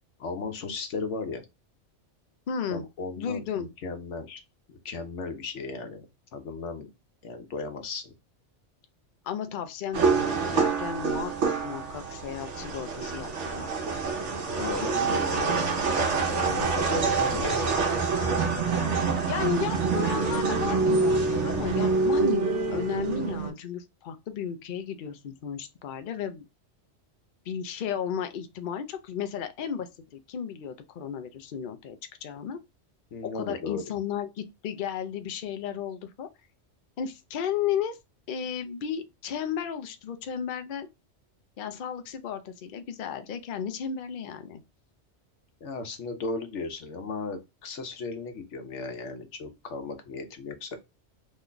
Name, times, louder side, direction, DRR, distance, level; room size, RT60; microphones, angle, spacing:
voice 1, 0.2-1.4 2.7-4.4 4.7-6.1 6.3-6.9 7.2-8.1 14.6-15.8 16.2-17.6 33.1-33.8 45.6-50.8, left 3 dB, 80° left, 1.1 m, -35 dB
voice 2, 2.5-2.9 3.2-3.7 9.2-13.7 16.9-17.2 19.3-22.4 22.7-26.5 27.5-32.6 33.2-36.3 37.0-38.0 38.3-40.9 41.6-44.6, left 8 dB, 55° left, 0.6 m, -34 dB
sound 1, 9.9-23.5, right 4 dB, 80° right, 1.1 m, -26 dB
3.1 x 2.2 x 3.7 m
omnidirectional pair, 1.2 m